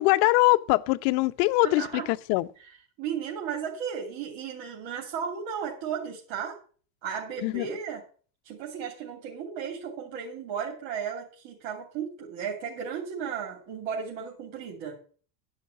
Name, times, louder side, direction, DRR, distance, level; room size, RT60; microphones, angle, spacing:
voice 1, 0.0-2.5 7.4-7.7, left 20 dB, 65° left, 0.8 m, -23 dB
voice 2, 1.6-2.0 2.6-6.5 7.0-8.0 8.4-15.0, right 7 dB, 60° right, 3.0 m, -35 dB
11.5 x 5.7 x 7.7 m
supercardioid pair, 115°, 50 cm